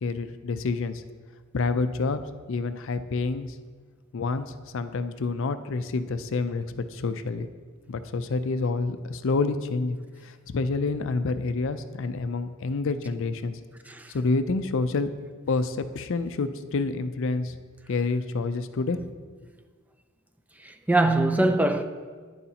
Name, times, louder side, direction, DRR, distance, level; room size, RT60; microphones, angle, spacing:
voice 1, 0.0-1.0 1.5-3.6 4.1-7.5 7.9-10.0 10.2-13.6 14.1-15.1 15.5-17.6 17.9-19.2, left 3 dB, 60° left, 0.5 m, -28 dB
voice 2, 20.6-21.8, right 2 dB, 5° right, 0.3 m, -23 dB
11.0 x 9.9 x 2.9 m
head